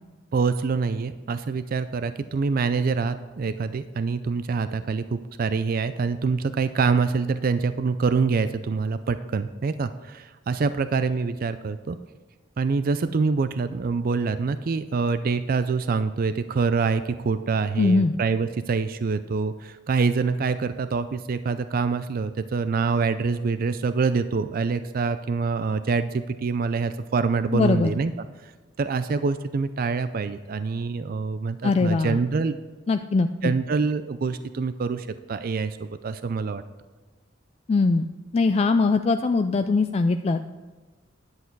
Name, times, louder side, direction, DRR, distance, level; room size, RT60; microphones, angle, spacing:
voice 1, 0.3-12.0 12.6-28.1 28.4-28.5 28.8-32.5 33.4-36.6, right 4 dB, 50° right, 11 dB, 0.4 m, -25 dB
voice 2, 17.8-18.1 27.5-27.9 31.6-32.2 32.9-33.5 37.7-38.1 38.3-40.4, left 3 dB, 30° left, 8 dB, 0.3 m, -21 dB
10.5 x 8.0 x 4.6 m, 1.3 s
head